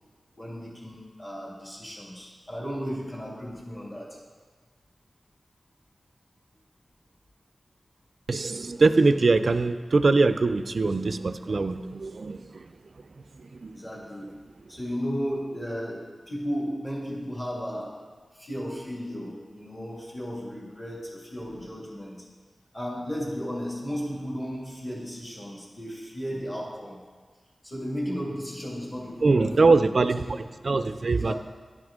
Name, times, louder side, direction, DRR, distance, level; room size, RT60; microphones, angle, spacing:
voice 1, 0.4-4.2 13.7-14.3 14.7-18.1 18.3-22.2 22.7-27.0 27.6-30.4 31.1-31.3, equal, 30° left, -3 dB, 2.1 m, -34 dB
voice 2, 8.3-12.7 13.4-13.8 29.2-30.2 30.6-31.3, right 3 dB, 55° right, 12 dB, 0.3 m, -22 dB
10.5 x 6.0 x 3.7 m, 1.5 s
wide cardioid pair, 110°, 0 cm